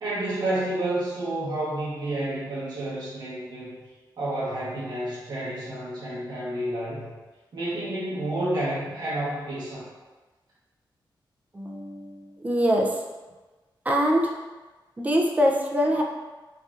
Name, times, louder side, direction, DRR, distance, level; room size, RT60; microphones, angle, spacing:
voice 1, 0.0-3.7 4.2-7.0 7.5-9.9, right 1 dB, 60° right, -10 dB, 1.3 m, -30 dB
voice 2, 11.5-13.0 13.9-14.3 15.0-16.0, equal, 20° right, 0 dB, 0.5 m, -23 dB
5.2 x 2.6 x 2.4 m, 1.2 s
wide cardioid pair, 150°, 8 cm